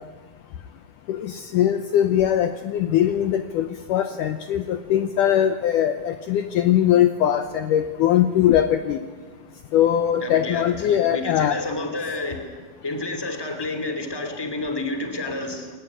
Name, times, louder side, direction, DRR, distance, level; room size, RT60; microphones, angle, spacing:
voice 1, 1.1-9.0 9.7-11.6, left 10 dB, 70° left, 9 dB, 2.1 m, -21 dB
voice 2, 10.2-12.5 12.8-15.7, left 2 dB, 5° left, 6 dB, 2.4 m, -30 dB
21.5 x 19.5 x 9.8 m, 1.4 s
omnidirectional pair, 4.3 m